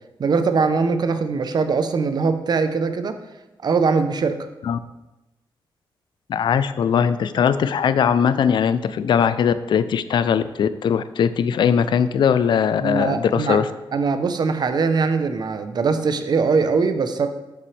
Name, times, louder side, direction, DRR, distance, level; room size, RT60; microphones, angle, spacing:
voice 1, 0.2-3.2 3.6-4.4 12.8-13.6 13.9-17.3, right 4 dB, 55° right, 9 dB, 0.6 m, -21 dB
voice 2, 6.3-13.7, left 7 dB, 65° left, 13 dB, 0.4 m, -20 dB
7.8 x 5.8 x 3.2 m, 1.0 s
cardioid pair, 100°, 9 cm